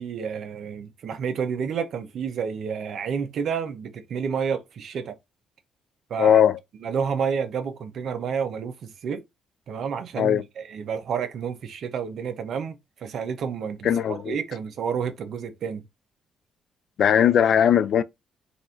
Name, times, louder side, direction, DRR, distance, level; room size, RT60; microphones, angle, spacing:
voice 1, 0.0-5.1 6.1-6.4 6.8-9.2 9.7-15.8, right 6 dB, 65° right, 0.8 m, -30 dB
voice 2, 6.2-6.6 10.2-10.4 13.8-14.4 17.0-18.0, left 9 dB, 65° left, 0.4 m, -19 dB
4.1 x 2.6 x 4.4 m
cardioid pair, 90°, 0 cm